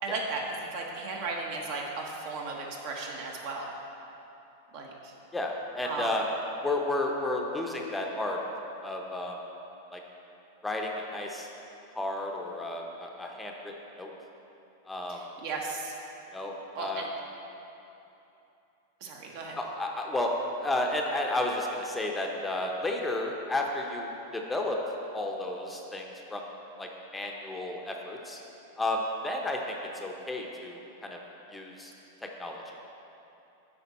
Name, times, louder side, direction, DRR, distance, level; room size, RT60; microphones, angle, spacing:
voice 1, 0.0-3.7 4.7-5.1 5.8-6.1 15.1-16.0 16.7-17.1 19.0-19.6, right 3 dB, 60° right, 0 dB, 1.2 m, -35 dB
voice 2, 5.3-6.3 6.6-8.4 8.8-9.4 9.9-10.0 10.6-11.5 11.9-14.1 14.9-15.2 16.3-17.1 19.6-20.3 20.6-24.8 25.1-26.4 26.8-28.4 28.8-31.2 31.5-31.9 32.4-32.6, left 2 dB, 10° left, 0 dB, 0.6 m, -32 dB
8.6 x 4.9 x 4.2 m, 2.9 s
hypercardioid pair, 125°, 0 cm